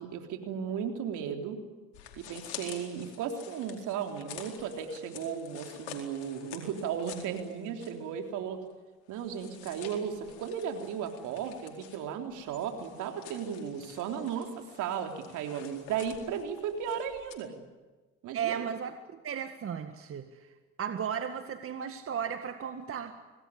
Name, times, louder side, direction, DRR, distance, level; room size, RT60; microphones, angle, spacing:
voice 1, 0.0-1.6 2.2-8.6 9.1-17.5 18.2-18.6, right 7 dB, 65° right, 3 dB, 3.8 m, -35 dB
sound 1, 1.9-8.1 8.4-8.5 9.1-17.4, left 9 dB, 80° left, 4.5 m, -49 dB
voice 2, 18.3-18.9 19.2-23.2, right 8 dB, 45° right, 7 dB, 1.9 m, -35 dB
25.5 x 19.5 x 10.0 m, 1.2 s
hypercardioid pair, 65°, 32 cm